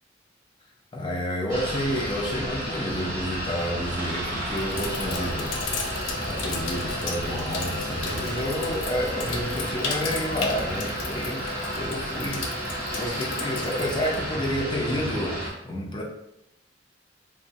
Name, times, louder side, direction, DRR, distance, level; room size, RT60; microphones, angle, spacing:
voice 1, 0.9-5.6 6.3-12.5 12.9-16.0, equal, 25° left, -1 dB, 0.4 m, -30 dB
sound 1, 1.5-15.5, equal, 15° right, 0.8 m, -32 dB
sound 2, 1.5-9.5, right 1 dB, 60° right, 0.5 m, -41 dB
Sink (filling or washing), 4.1-15.0, left 3 dB, 90° left, 0.4 m, -35 dB
2.9 x 2.0 x 2.6 m, 0.84 s
head